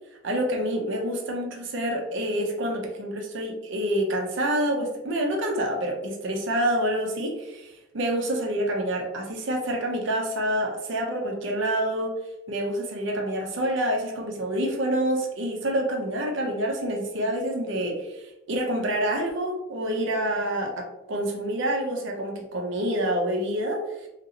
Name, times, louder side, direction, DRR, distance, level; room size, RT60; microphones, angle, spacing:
voice 1, 0.2-12.1 12.5-23.8, right 1 dB, 65° right, 1 dB, 0.6 m, -27 dB
2.9 x 2.7 x 2.8 m, 0.97 s
head